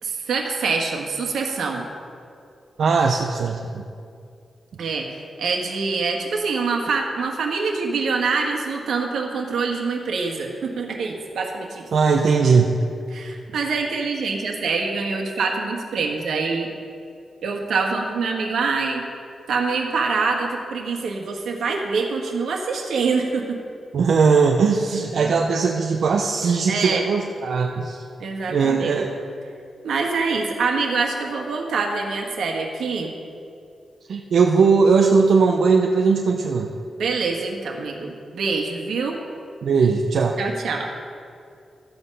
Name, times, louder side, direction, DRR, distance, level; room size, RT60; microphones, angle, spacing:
voice 1, 0.0-1.8 4.8-11.8 13.1-16.7 17.4-19.1 19.5-23.6 25.2-25.6 26.7-27.1 28.2-29.0 29.8-33.1 37.0-39.2 40.4-40.9, right 4 dB, 85° right, 1 dB, 1.5 m, -25 dB
voice 2, 2.8-3.8 11.9-12.8 23.9-28.0 28.5-29.1 34.1-36.7 39.6-40.4, right 5 dB, 60° right, 2 dB, 0.7 m, -19 dB
13.0 x 8.0 x 5.4 m, 2.4 s
wide cardioid pair, 165°, 0 cm